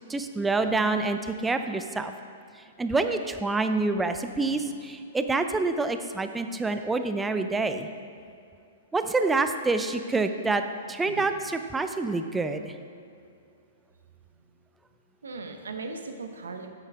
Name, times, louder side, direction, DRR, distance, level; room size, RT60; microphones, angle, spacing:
voice 1, 0.1-2.1 2.8-7.9 8.9-11.3 11.7-12.7, right 3 dB, 10° right, 8 dB, 0.5 m, -27 dB
voice 2, 4.4-4.7 11.1-11.3 14.4-14.5 15.2-16.7, right 3 dB, 70° right, 6 dB, 0.9 m, -39 dB
10.0 x 8.0 x 3.6 m, 2.5 s
figure-of-eight pair, 110°, 0 cm